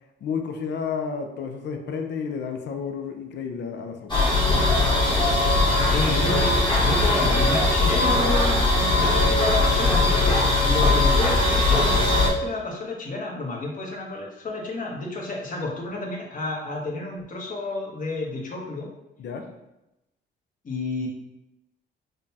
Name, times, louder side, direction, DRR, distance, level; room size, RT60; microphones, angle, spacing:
voice 1, 0.2-4.2 19.2-19.5, left 6 dB, 65° left, 5 dB, 0.5 m, -31 dB
sound 1, 4.1-12.3, left 2 dB, 25° left, 1.3 m, -20 dB
voice 2, 5.8-18.9 20.6-21.1, left 2 dB, 45° left, -1 dB, 1.1 m, -31 dB
5.0 x 2.3 x 2.8 m, 0.92 s
cardioid pair, 90°, 20 cm